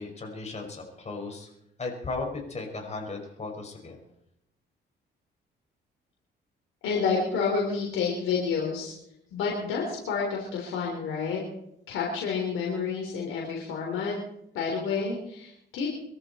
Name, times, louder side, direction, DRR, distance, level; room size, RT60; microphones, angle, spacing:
voice 1, 0.0-1.5 1.8-4.0, left 3 dB, 35° left, 2 dB, 5.3 m, -36 dB
voice 2, 6.8-8.9 9.3-11.4 11.9-14.2 14.5-15.9, left 5 dB, 85° left, -2 dB, 3.6 m, -29 dB
23.5 x 13.5 x 4.3 m, 0.78 s
cardioid pair, 90°, 20 cm